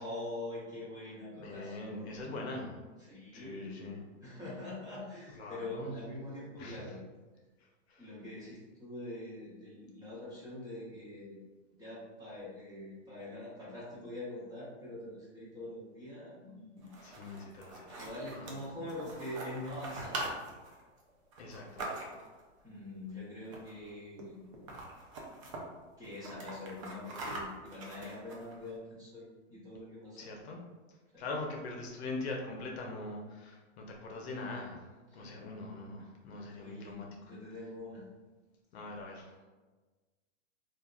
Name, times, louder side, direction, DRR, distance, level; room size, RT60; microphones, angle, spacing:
voice 1, 0.0-2.2 3.0-3.9 4.2-7.0 8.0-11.4 11.8-17.5 17.9-20.2 22.6-24.4 26.0-30.3 31.1-31.3 35.1-35.4 36.6-38.0, left 1 dB, 10° right, -9 dB, 0.8 m, -44 dB
voice 2, 1.4-2.8 3.3-4.0 5.4-5.9 6.6-6.8 7.9-8.1 17.0-18.1 18.4-18.6 21.4-21.9 30.2-30.6 31.2-34.8 35.1-37.3 38.7-39.4, left 2 dB, 55° left, 0 dB, 0.7 m, -42 dB
sound 1, 16.8-22.4 23.4-23.9 24.2-24.3 24.5-25.6 26.0-28.7, right 2 dB, 25° right, 0.3 m, -43 dB
3.3 x 2.4 x 2.3 m, 1.3 s
hypercardioid pair, 135°, 38 cm